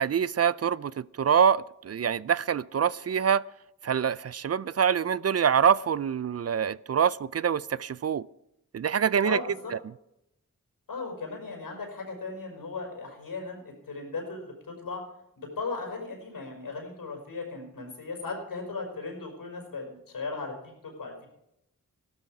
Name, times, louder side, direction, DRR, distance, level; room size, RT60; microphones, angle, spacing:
voice 1, 0.0-3.4 3.8-8.3 8.7-9.4 9.7-9.8, right 7 dB, 50° right, 20 dB, 0.4 m, -25 dB
voice 2, 9.2-9.7 10.9-15.0 15.4-20.5 20.8-21.3, left 3 dB, 85° left, 2 dB, 5.2 m, -37 dB
15.5 x 12.5 x 4.8 m, 0.83 s
cardioid pair, 65°, 33 cm